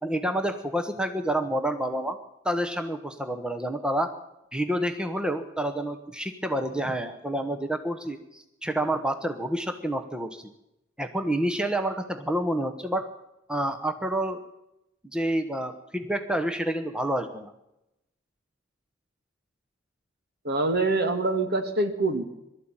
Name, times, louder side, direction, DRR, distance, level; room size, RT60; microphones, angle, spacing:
voice 1, 0.0-2.2 2.4-4.1 4.5-10.4 11.0-13.1 13.5-14.4 15.1-17.5, right 1 dB, 5° right, 7 dB, 1.1 m, -28 dB
voice 2, 20.4-22.2, right 2 dB, 50° right, 7 dB, 2.2 m, -25 dB
22.5 x 13.0 x 8.9 m, 0.89 s
head